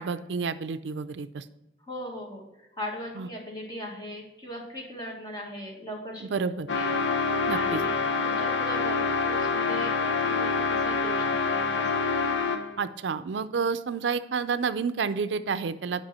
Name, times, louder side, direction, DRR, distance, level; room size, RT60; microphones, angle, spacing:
voice 1, 0.0-1.4 3.2-3.3 6.3-6.7 7.5-7.8 12.8-16.1, right 5 dB, 80° right, 12 dB, 0.5 m, -29 dB
voice 2, 1.8-6.3 6.7-12.0, equal, 25° left, -1 dB, 1.8 m, -39 dB
sound 1, 6.7-12.8, left 4 dB, 90° left, 0.7 m, -26 dB
8.8 x 5.4 x 4.2 m, 0.97 s
head